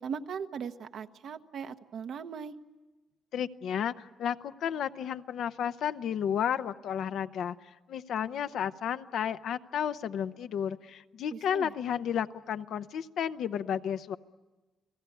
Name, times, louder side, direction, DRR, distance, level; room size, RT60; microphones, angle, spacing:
voice 1, 0.0-2.6 11.3-11.7, right 6 dB, 65° right, 8 dB, 1.1 m, -39 dB
voice 2, 3.3-7.6 7.9-14.2, left 8 dB, 70° left, 11 dB, 0.8 m, -32 dB
30.0 x 18.0 x 9.2 m, 1.2 s
cardioid pair, 90°, 0 cm